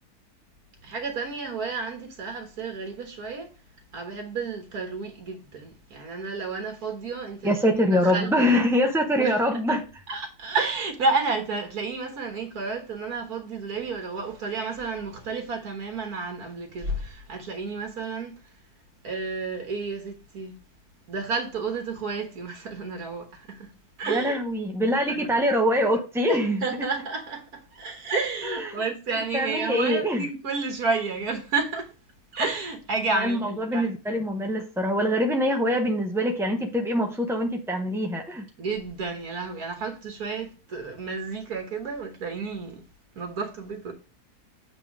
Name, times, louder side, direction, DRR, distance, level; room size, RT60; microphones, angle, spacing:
voice 1, 0.8-3.5 3.9-7.5 7.9-8.3 9.2-9.8 10.1-18.3 19.0-20.6 21.1-23.7 24.0-24.4 25.1-25.3 26.3-31.9 32.3-33.9 38.6-42.8 43.2-43.9, right 4 dB, 75° right, 1.9 m, -31 dB
voice 2, 7.4-9.8 24.1-26.6 28.4-28.7 29.3-30.2 33.1-38.5, equal, 5° right, 0.4 m, -24 dB
7.9 x 3.7 x 6.0 m
omnidirectional pair, 1.6 m